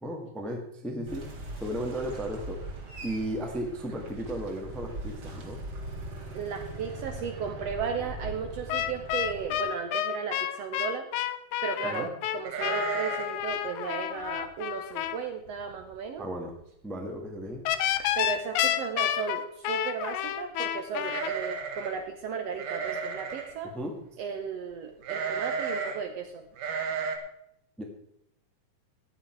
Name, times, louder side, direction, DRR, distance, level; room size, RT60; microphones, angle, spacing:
voice 1, 0.0-1.3 1.6-5.6 11.8-12.1 16.2-16.5 16.8-17.6 23.7-23.9 27.8-27.9, right 1 dB, ahead, 2 dB, 1.0 m, -35 dB
sound 1, 1.1-9.6, right 2 dB, 35° right, 2.3 m, -40 dB
voice 2, 6.3-11.1 11.6-16.3 18.0-23.7 24.2-26.5, right 6 dB, 70° right, 6 dB, 1.6 m, -35 dB
sound 2, 8.7-15.2 17.7-21.3, left 12 dB, 75° left, 2.1 m, -30 dB
sound 3, 12.5-13.4 13.7-13.8 14.2-14.5 15.1-15.2 15.5-16.0 16.3-16.4 17.5-17.6 17.9-18.3 21.0-22.0 22.6-23.5 25.0-26.0 26.6-27.2, right 6 dB, 90° right, 3.0 m, -33 dB
14.5 x 9.5 x 4.5 m, 0.77 s
omnidirectional pair, 3.6 m